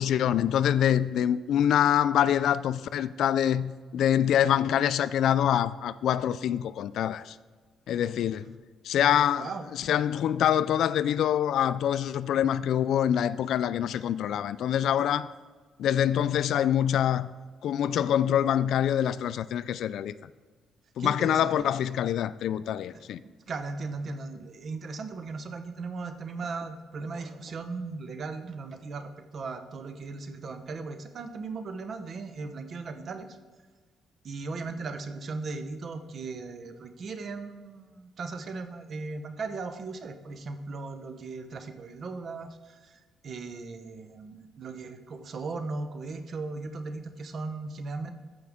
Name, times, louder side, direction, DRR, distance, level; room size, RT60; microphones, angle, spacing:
voice 1, 0.0-7.4 7.9-8.5 8.8-15.3 15.8-17.3 17.6-20.1 21.0-23.2, left 10 dB, 75° left, 0.3 m, -25 dB
voice 2, 9.3-9.7 21.0-21.7 22.9-23.0 23.5-33.3 34.2-48.1, right 3 dB, 55° right, 0.9 m, -37 dB
14.0 x 5.2 x 3.6 m
cardioid pair, 90°, 0 cm